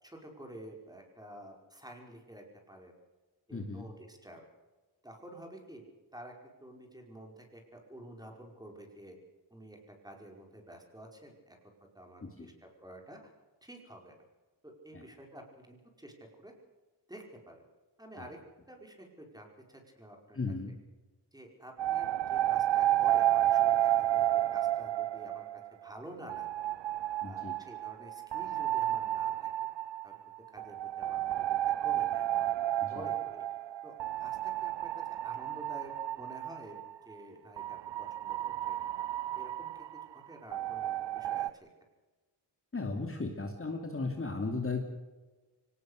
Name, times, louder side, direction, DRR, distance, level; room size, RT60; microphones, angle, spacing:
voice 1, 0.0-2.9 3.5-4.4 5.0-5.8 6.1-9.2 9.5-12.5 12.8-13.2 13.6-14.2 14.6-16.5 17.1-17.6 18.0-18.4 18.7-20.4 21.3-26.7 27.2-29.7 30.0-30.2 30.5-32.6 32.9-33.4 33.8-34.9 35.2-36.8 37.1-38.4 38.7-38.8 39.4-39.7 40.1-41.7, right 1 dB, 10° right, 2 dB, 5.2 m, -50 dB
voice 2, 3.5-3.9 12.2-12.5 14.9-15.0 18.2-18.3 20.3-20.7 27.2-27.6 32.8-33.1 42.7-44.8, left 3 dB, 30° left, 2 dB, 2.8 m, -36 dB
sound 1, 21.8-25.9 26.3-36.9 37.6-41.5, right 13 dB, 65° right, 0.6 m, -31 dB
25.0 x 18.5 x 6.6 m, 1.2 s
wide cardioid pair, 110°, 47 cm